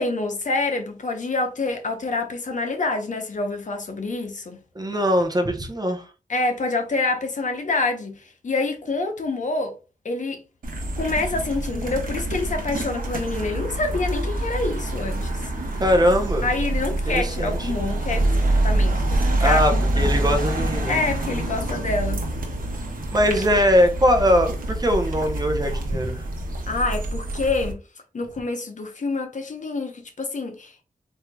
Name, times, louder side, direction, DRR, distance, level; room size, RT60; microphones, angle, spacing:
voice 1, 0.0-4.6 6.3-9.7 10.0-10.4 11.0-15.3 16.4-20.1 20.9-22.2 26.7-27.8 28.1-30.8, left 3 dB, 60° left, 0.8 m, -27 dB
voice 2, 4.7-6.1 15.8-16.5 17.1-17.7 19.4-20.9 23.1-26.2, equal, 25° right, 0.7 m, -21 dB
sound 1, 10.6-27.7, right 1 dB, 80° right, 0.9 m, -26 dB
4.4 x 2.7 x 2.3 m
wide cardioid pair, 100°, 14 cm